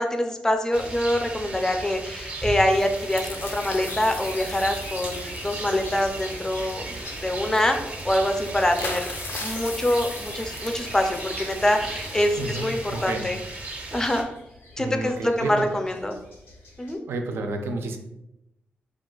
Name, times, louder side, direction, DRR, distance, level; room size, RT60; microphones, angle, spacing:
voice 1, 0.0-6.8 7.2-7.8 8.0-9.1 9.4-13.4 13.9-14.3 14.8-16.2 16.8-17.0, left 1 dB, 15° left, 5 dB, 0.4 m, -25 dB
Rain, 0.7-14.2, right 2 dB, 35° right, 0.6 m, -36 dB
sound 1, 2.7-13.1, left 3 dB, 65° left, 0.5 m, -39 dB
sound 2, 3.0-17.0, left 1 dB, 90° left, 1.1 m, -45 dB
voice 2, 12.4-13.3 14.8-15.8 17.1-18.0, right 3 dB, 80° right, 5 dB, 0.4 m, -31 dB
2.4 x 2.3 x 3.7 m, 0.87 s
cardioid pair, 70°, 4 cm